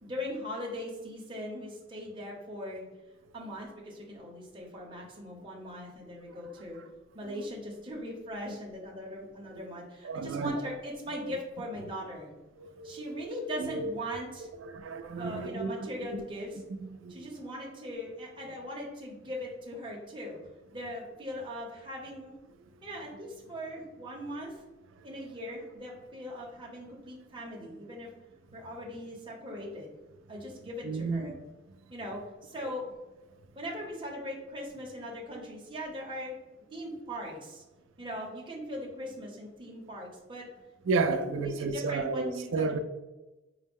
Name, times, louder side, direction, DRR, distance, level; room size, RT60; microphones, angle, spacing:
voice 1, 0.0-2.9 3.3-6.8 7.1-12.3 12.8-14.5 15.2-16.6 17.1-20.4 20.7-22.3 22.8-24.6 25.0-28.1 28.5-29.9 30.3-31.3 31.9-32.9 33.5-37.6 38.0-40.5 41.4-42.8, equal, 25° right, 0.7 m, -40 dB
voice 2, 10.0-10.6 11.2-11.4 12.6-14.0 14.6-16.2 16.9-17.2 30.8-31.4 32.6-32.7 40.9-42.8, right 4 dB, 90° right, 0.3 m, -32 dB
4.9 x 2.1 x 3.5 m
head